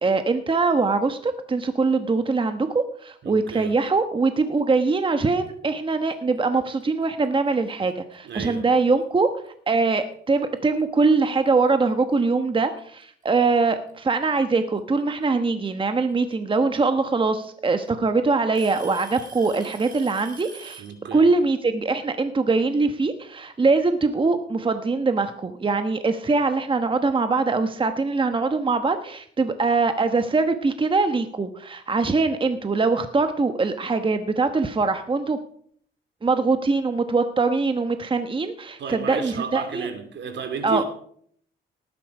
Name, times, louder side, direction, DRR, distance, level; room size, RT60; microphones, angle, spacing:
voice 1, 0.0-9.3 9.7-20.8 21.1-35.4 36.2-39.9 40.6-40.8, right 3 dB, 25° right, 1.1 m, -22 dB
voice 2, 3.2-3.7 8.2-8.7 20.8-21.3 38.8-40.8, right 6 dB, 65° right, 2.9 m, -32 dB
Alarm / Tick-tock, 7.0-7.3 8.1-8.2 9.0-9.1 10.8-10.9 12.1-12.2 13.5-13.9 15.7-15.8 17.0-17.1 17.4-17.9 18.5-21.0, right 4 dB, 40° right, 4.3 m, -45 dB
18.5 x 10.0 x 4.9 m
cardioid pair, 90°, 20 cm